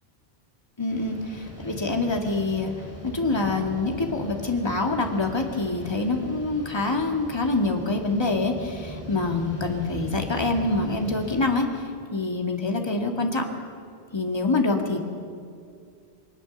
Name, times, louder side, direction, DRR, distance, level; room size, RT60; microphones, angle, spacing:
voice 1, 0.8-2.7 3.0-11.7 12.1-13.4 14.1-15.0, left 3 dB, 25° left, 2 dB, 1.9 m, -25 dB
sound 1, 0.9-11.5, equal, 15° right, 5.8 m, -40 dB
21.5 x 19.5 x 7.0 m, 2.3 s
omnidirectional pair, 1.1 m